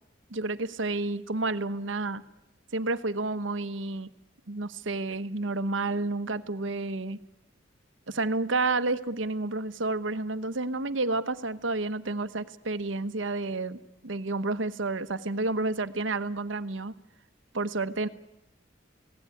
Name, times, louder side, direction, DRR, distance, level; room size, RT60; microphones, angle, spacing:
voice 1, 0.3-2.2 2.7-4.1 4.5-7.2 8.1-16.9 17.5-18.1, right 3 dB, 85° right, 12 dB, 1.2 m, -30 dB
27.5 x 17.5 x 9.8 m, 0.90 s
head